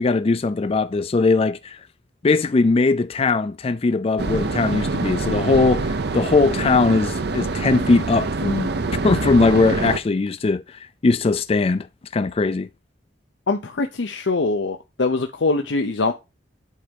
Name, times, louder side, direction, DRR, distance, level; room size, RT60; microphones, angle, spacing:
voice 1, 0.0-1.8 2.2-8.7 9.0-11.9 12.1-12.7, left 3 dB, 35° left, 0.4 m, -20 dB
sound 1, 4.2-10.0, right 3 dB, 65° right, 0.6 m, -25 dB
voice 2, 13.5-16.1, left 3 dB, 80° left, 0.7 m, -23 dB
8.3 x 3.4 x 5.2 m
head